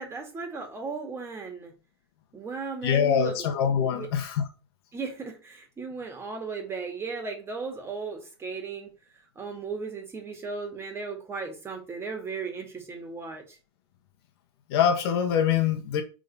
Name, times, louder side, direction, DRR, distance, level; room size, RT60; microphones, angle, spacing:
voice 1, 0.0-1.7 2.3-3.5 3.9-4.1 4.9-8.9 9.4-13.6, right 4 dB, 20° right, 1.9 m, -36 dB
voice 2, 2.8-4.5 14.7-16.0, left 8 dB, 70° left, 1.4 m, -24 dB
5.1 x 3.8 x 5.3 m
supercardioid pair, 135°, 14 cm